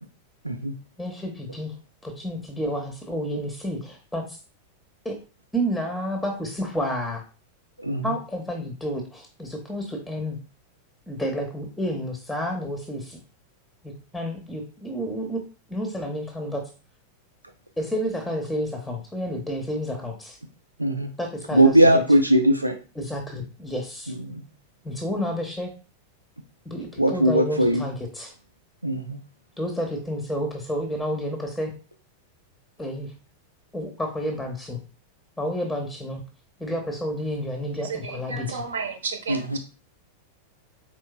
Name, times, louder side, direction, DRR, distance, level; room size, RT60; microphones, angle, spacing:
voice 1, 1.0-1.8 2.0-4.4 5.0-5.2 5.5-7.2 8.0-10.4 11.1-13.2 13.8-15.4 15.7-16.6 17.8-20.4 21.2-22.0 23.0-24.1 24.8-25.7 26.7-28.3 29.6-31.7 32.8-33.1 33.7-34.8 35.4-36.2 36.6-38.6, equal, 5° left, 3 dB, 0.7 m, -30 dB
voice 2, 21.5-22.8 24.3-24.4 27.0-27.8 28.8-29.2 39.3-39.6, right 1 dB, 85° right, 6 dB, 0.3 m, -19 dB
voice 3, 37.8-39.6, right 5 dB, 65° right, 5 dB, 0.7 m, -32 dB
4.4 x 3.0 x 2.3 m, 0.35 s
figure-of-eight pair, 90°, 0 cm